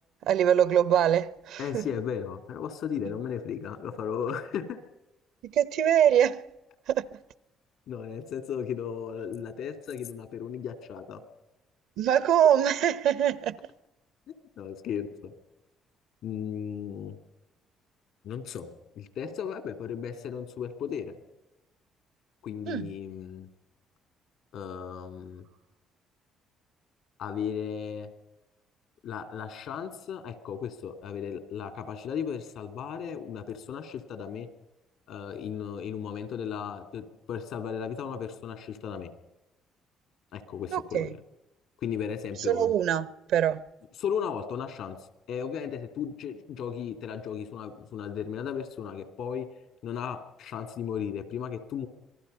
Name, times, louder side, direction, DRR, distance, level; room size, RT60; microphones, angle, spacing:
voice 1, 0.2-1.9 5.4-6.4 6.9-7.2 12.0-13.6 22.7-22.9 40.7-41.1 42.4-43.6, right 10 dB, 75° right, 0.8 m, -24 dB
voice 2, 1.6-4.8 7.9-11.2 14.3-15.3 16.2-17.2 18.2-21.2 22.4-23.5 24.5-25.4 27.2-28.1 29.0-34.5 35.1-39.1 40.3-41.1 41.8-42.7 44.0-45.0 45.3-49.5 49.8-51.9, left 7 dB, 75° left, 2.6 m, -35 dB
26.5 x 19.0 x 5.6 m
supercardioid pair, 70°, 0 cm